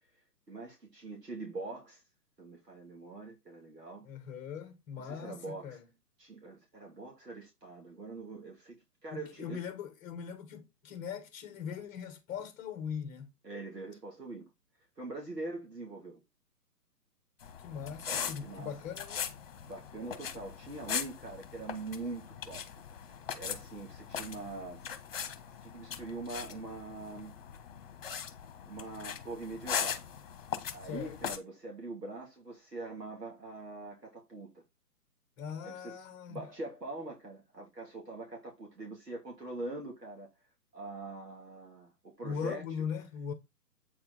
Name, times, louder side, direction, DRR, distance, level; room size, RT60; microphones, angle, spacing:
voice 1, 0.5-2.0 2.4-4.1 5.0-5.8 6.2-9.6 13.4-14.5 15.0-16.2 18.4-18.7 19.6-22.7 23.3-24.8 25.6-27.4 28.6-30.0 30.7-34.5 35.6-40.3 40.7-42.6, right 3 dB, 80° right, 3.0 m, -43 dB
voice 2, 4.0-5.9 9.1-13.3 17.6-19.3 30.8-31.2 35.4-36.4 42.2-43.3, left 7 dB, 15° left, 1.5 m, -40 dB
sound 1, 17.4-31.4, left 8 dB, 35° left, 1.4 m, -40 dB
8.4 x 4.5 x 4.1 m
figure-of-eight pair, 130°, 48 cm